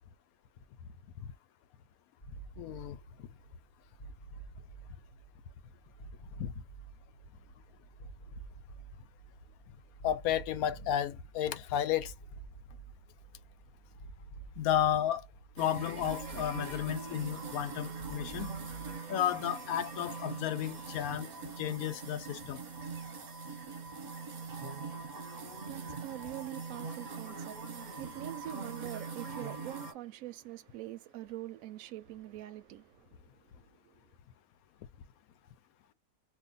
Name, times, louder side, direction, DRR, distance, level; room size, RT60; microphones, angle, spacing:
sound 1, 2.2-18.9, right 4 dB, 35° left, 0.7 m, -51 dB
voice 1, 2.6-3.0 6.4-6.5 10.0-12.1 14.6-15.2 15.6-18.5 19.1-21.3 21.6-22.6, left 10 dB, 75° left, 1.0 m, -32 dB
sound 2, 15.6-29.9, right 4 dB, 35° right, 0.8 m, -42 dB
voice 2, 24.0-34.0, right 14 dB, 70° right, 0.9 m, -45 dB
2.6 x 2.4 x 3.8 m
omnidirectional pair, 1.6 m